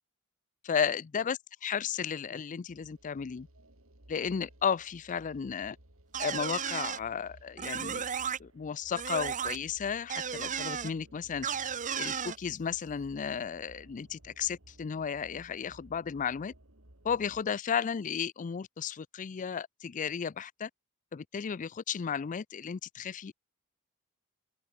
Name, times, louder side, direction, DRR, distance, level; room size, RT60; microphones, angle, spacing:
voice 1, 0.6-3.5 4.1-5.8 6.2-8.1 8.4-11.5 12.0-16.5 17.0-20.7 21.1-23.3, left 7 dB, 35° left, 0.4 m, -34 dB
sound 1, 2.7-17.4, right 1 dB, 70° right, 4.6 m, -58 dB
sound 2, 6.1-7.0 7.6-8.4 9.0-9.6 10.1-10.9 11.4-12.4, right 7 dB, 35° right, 0.9 m, -34 dB
open air
head